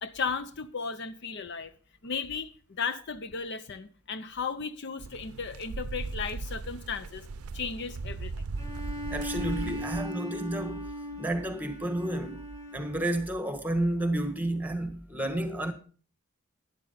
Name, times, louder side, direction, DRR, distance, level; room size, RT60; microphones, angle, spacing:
voice 1, 0.0-1.7 2.0-7.3 7.5-8.3, left 5 dB, 55° left, 0.7 m, -35 dB
sound 1, 5.0-10.0, right 3 dB, 90° right, 0.6 m, -38 dB
Bowed string instrument, 8.6-13.3, left 1 dB, 15° left, 2.1 m, -39 dB
voice 2, 9.1-10.9 11.2-12.4 12.7-15.7, right 1 dB, 10° right, 1.3 m, -31 dB
12.0 x 10.5 x 4.0 m
head